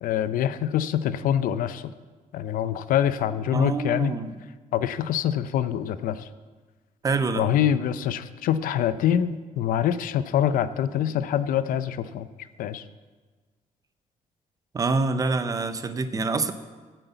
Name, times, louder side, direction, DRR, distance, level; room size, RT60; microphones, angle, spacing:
voice 1, 0.0-1.9 2.3-4.1 4.7-6.3 7.4-12.3 12.6-12.8, left 10 dB, 80° left, 14 dB, 0.6 m, -25 dB
voice 2, 3.5-4.3 7.0-7.5 14.7-16.5, right 3 dB, 25° right, 11 dB, 0.5 m, -26 dB
9.1 x 7.9 x 8.0 m, 1.4 s
cardioid pair, 170°, 14 cm